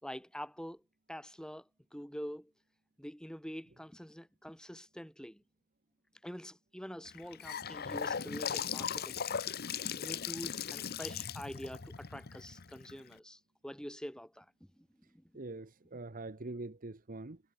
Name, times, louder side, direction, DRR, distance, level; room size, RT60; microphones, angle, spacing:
voice 1, 0.0-0.8 1.1-1.6 1.9-2.5 3.0-5.4 6.2-9.2 9.9-14.9 15.1-15.2, equal, 5° left, 5.2 m, -45 dB
Gurgling / Sink (filling or washing) / Bathtub (filling or washing), 7.1-13.1, left 7 dB, 45° left, 0.9 m, -38 dB
voice 2, 15.3-17.4, right 2 dB, 40° right, 1.1 m, -43 dB
head